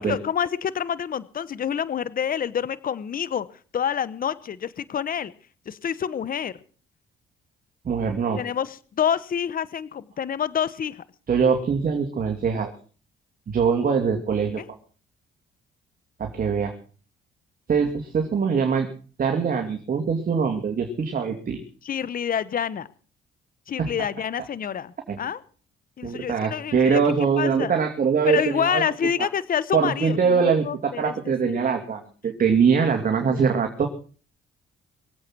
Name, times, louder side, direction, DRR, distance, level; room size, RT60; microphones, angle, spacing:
voice 1, 0.1-3.5 3.7-5.3 5.7-6.6 8.4-11.0 14.6-14.7 21.8-22.9 23.7-25.4 26.0-27.0 27.4-27.7 28.3-31.6 33.2-33.4, left 8 dB, 45° left, 18 dB, 1.0 m, -27 dB
voice 2, 7.8-8.4 11.3-12.7 13.5-14.6 16.2-16.7 17.7-18.9 19.2-21.6 23.8-23.9 25.1-25.2 26.0-28.8 29.2-29.3 29.7-33.9, right 6 dB, 45° right, 4 dB, 2.7 m, -23 dB
24.0 x 8.3 x 6.0 m, 0.41 s
cardioid pair, 90°, 20 cm